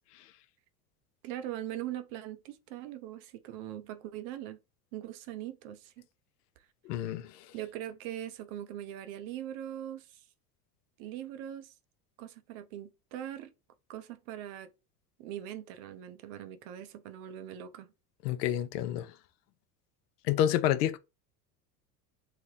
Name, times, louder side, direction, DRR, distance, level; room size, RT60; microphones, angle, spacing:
voice 1, 1.2-4.6 4.9-6.0 7.5-10.2 11.0-11.7 12.2-13.5 13.9-14.7 15.2-17.9, right 11 dB, 55° right, 0.6 m, -41 dB
voice 2, 6.9-7.3 18.2-19.1 20.3-21.0, left 11 dB, 70° left, 0.6 m, -28 dB
3.2 x 2.1 x 3.8 m
hypercardioid pair, 80°, 48 cm